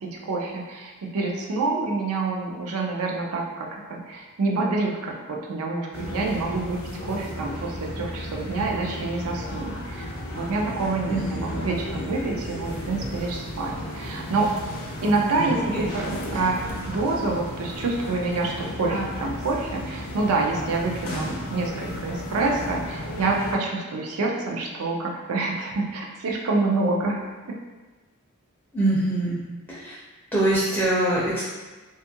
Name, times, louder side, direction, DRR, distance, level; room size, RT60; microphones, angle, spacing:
voice 1, 0.0-10.1 10.3-14.5 15.0-27.5, right 3 dB, 75° right, 0 dB, 0.4 m, -27 dB
sound 1, 5.9-23.6, left 1 dB, 75° left, 0.6 m, -34 dB
voice 2, 11.1-11.7 15.3-15.9 18.9-19.1 28.7-29.4 29.7-29.9 30.3-31.4, right 1 dB, 5° left, -9 dB, 0.4 m, -24 dB
2.6 x 2.3 x 2.7 m, 1.2 s
head